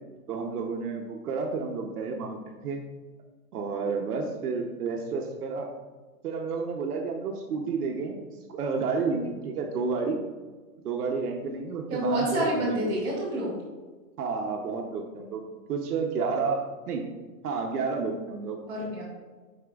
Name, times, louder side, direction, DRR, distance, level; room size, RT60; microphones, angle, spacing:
voice 1, 0.3-2.8 3.5-5.7 6.2-8.2 8.5-10.2 10.8-12.9 14.2-15.4 15.7-17.0 17.4-18.6, right 4 dB, 80° right, 2 dB, 0.9 m, -30 dB
voice 2, 11.9-13.6 18.7-19.0, right 1 dB, 10° right, -9 dB, 0.8 m, -28 dB
9.9 x 4.3 x 2.4 m, 1.3 s
hypercardioid pair, 165°, 45 cm